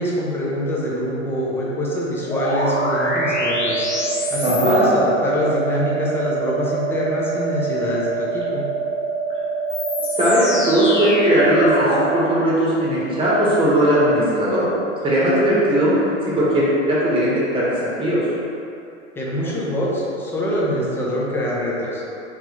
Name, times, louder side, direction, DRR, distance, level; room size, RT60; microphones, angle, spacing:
voice 1, 0.0-8.7 19.2-22.0, equal, 5° left, -5 dB, 0.3 m, -24 dB
sound 1, 2.3-12.2, right 2 dB, 70° left, 0.8 m, -24 dB
voice 2, 4.4-4.9 10.2-14.7 15.0-18.2, equal, 15° right, -7 dB, 1.1 m, -18 dB
3.5 x 3.0 x 3.0 m, 2.8 s
hypercardioid pair, 100°, 37 cm